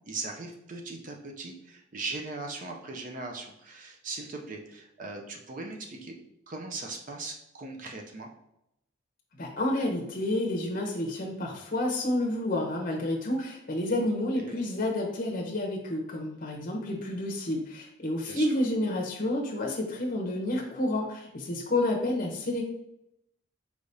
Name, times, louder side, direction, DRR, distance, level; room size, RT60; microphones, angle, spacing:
voice 1, 0.1-6.2 6.5-8.3 14.0-14.1 14.4-14.6 18.3-18.5, right 3 dB, 35° right, 2 dB, 0.5 m, -39 dB
voice 2, 9.4-22.6, left 1 dB, 40° left, 0 dB, 0.7 m, -30 dB
4.7 x 3.3 x 2.7 m, 0.82 s
head